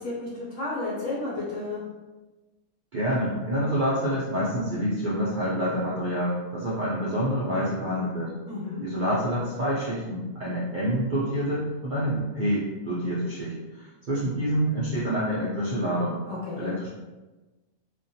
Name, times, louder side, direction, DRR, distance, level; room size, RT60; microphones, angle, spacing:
voice 1, 0.0-1.8 8.5-8.8 16.3-16.7, left 2 dB, 70° left, -6 dB, 1.1 m, -32 dB
voice 2, 2.9-8.3 8.8-16.2 16.6-16.9, equal, 70° right, -8 dB, 0.4 m, -27 dB
2.4 x 2.2 x 2.7 m, 1.2 s
omnidirectional pair, 1.5 m